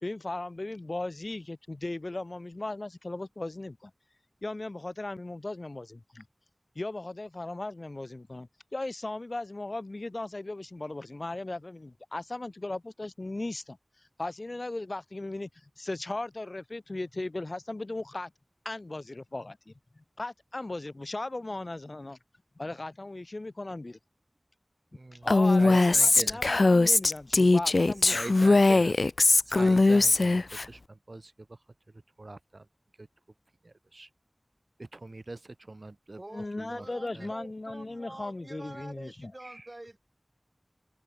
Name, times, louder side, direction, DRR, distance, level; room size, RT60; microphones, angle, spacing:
voice 1, 0.0-3.9 4.4-6.3 6.8-13.8 14.2-15.5 15.8-18.3 18.6-19.7 20.2-22.2 22.6-24.0 25.1-28.4 28.8-28.9 36.3-39.3, left 2 dB, 60° left, 2.3 m, -37 dB
voice 2, 24.9-25.3 25.6-26.4 28.1-28.9 29.5-31.6 32.2-32.6 33.0-33.1 33.6-34.1 34.8-36.2 36.6-36.9 37.1-37.3 39.4-39.7, right 2 dB, 70° right, 6.9 m, -42 dB
Female speech woman speaking, 25.3-30.7, left 2 dB, 85° left, 0.6 m, -21 dB
voice 3, 36.2-40.0, right 1 dB, 40° right, 4.8 m, -46 dB
wide cardioid pair, 45°, 0 cm